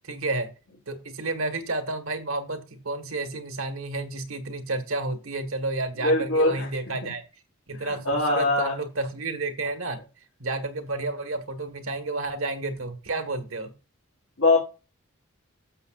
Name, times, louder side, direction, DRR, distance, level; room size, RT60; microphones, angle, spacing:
voice 1, 0.0-0.5 0.9-7.2 7.7-10.0 10.4-13.7, right 2 dB, 80° right, 8 dB, 1.6 m, -31 dB
voice 2, 6.0-6.7 7.0-7.1 7.8-8.7 14.4-14.6, left 2 dB, 85° left, -5 dB, 3.7 m, -22 dB
12.0 x 7.2 x 2.5 m, 0.31 s
head